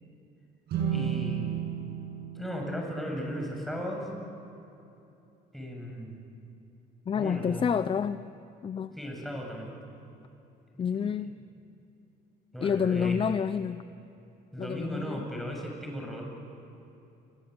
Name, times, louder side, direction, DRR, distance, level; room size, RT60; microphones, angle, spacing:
sound 1, 0.7-3.9, right 9 dB, 70° right, 7.9 m, -34 dB
voice 1, 0.9-1.8 2.4-4.1 5.5-6.2 7.1-7.6 8.9-9.7 10.7-11.0 12.5-13.2 14.5-16.2, equal, ahead, 0 dB, 7.3 m, -36 dB
voice 2, 7.1-8.3 8.6-8.9 10.8-11.3 12.6-13.8 14.6-15.3, left 7 dB, 30° left, 13 dB, 0.6 m, -28 dB
29.0 x 22.0 x 8.1 m, 2.8 s
cardioid pair, 110°, 17 cm